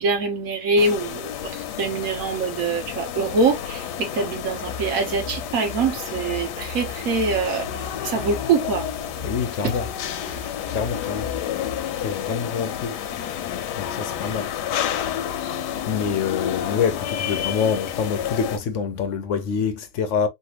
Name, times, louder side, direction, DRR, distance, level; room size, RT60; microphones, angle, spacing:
voice 1, 0.0-8.9 9.6-9.7, right 3 dB, 60° right, 1.3 m, -24 dB
sound 1, 0.8-18.6, left 10 dB, 85° left, 1.2 m, -30 dB
sound 2, 4.5-11.8, left 3 dB, 10° left, 0.3 m, -38 dB
voice 2, 9.2-9.9 10.7-11.3 12.0-12.9 13.8-14.5 15.9-20.3, left 6 dB, 65° left, 0.8 m, -26 dB
3.3 x 2.5 x 2.8 m
omnidirectional pair, 1.7 m